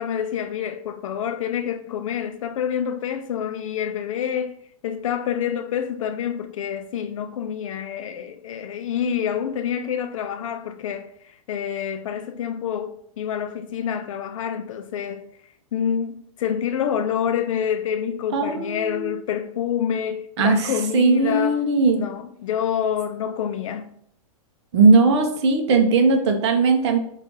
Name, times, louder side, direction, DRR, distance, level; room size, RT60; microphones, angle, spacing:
voice 1, 0.0-15.3 15.7-21.6 21.9-24.0, left 8 dB, 65° left, 0.4 m, -27 dB
voice 2, 18.3-19.1 20.4-22.0 24.7-27.0, right 3 dB, 50° right, 0.7 m, -18 dB
5.3 x 2.4 x 3.7 m
supercardioid pair, 165°, 18 cm